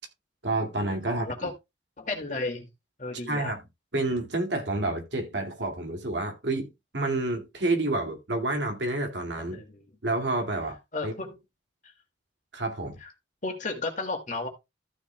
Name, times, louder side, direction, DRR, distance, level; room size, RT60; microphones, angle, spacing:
voice 1, 0.4-1.3 3.3-3.6 3.9-9.6 10.0-10.8 11.0-11.1 12.5-13.0, right 2 dB, 70° right, 2.3 m, -29 dB
voice 2, 1.1-1.5 2.0-2.7 3.0-3.5 9.5-9.8 10.9-11.4 11.8-11.9 13.0-13.1 13.4-14.5, left 3 dB, 45° left, 2.3 m, -33 dB
14.0 x 7.0 x 2.3 m
head